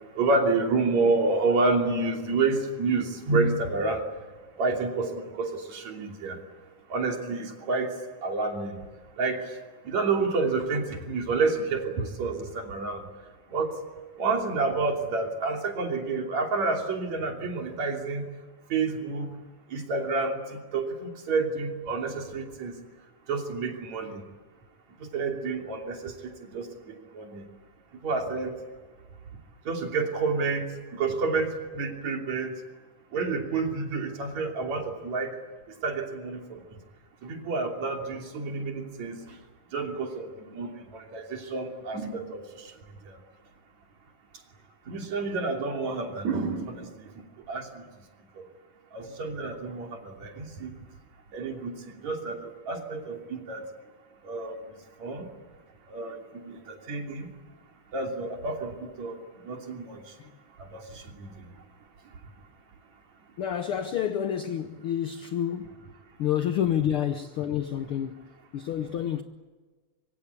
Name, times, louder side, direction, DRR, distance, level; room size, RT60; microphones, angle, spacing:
voice 1, 0.2-4.0 4.6-6.4 6.9-7.9 8.2-8.8 9.2-9.6 9.8-13.1 13.5-13.8 14.2-18.3 18.7-19.3 19.7-22.8 23.3-24.3 25.0-27.5 28.0-28.5 29.7-32.6 33.1-35.4 35.7-36.6 37.2-39.4 39.7-42.7 43.1-43.2 44.9-47.8 48.4-48.5 48.9-50.7 51.3-53.6 54.2-54.6 55.0-55.3 55.9-57.3 57.9-60.1 60.6-61.5, right 3 dB, 60° right, 4.3 m, -29 dB
voice 2, 63.4-65.8 66.2-68.3 68.5-69.2, left 10 dB, 75° left, 1.2 m, -29 dB
25.5 x 24.5 x 8.4 m
omnidirectional pair, 3.7 m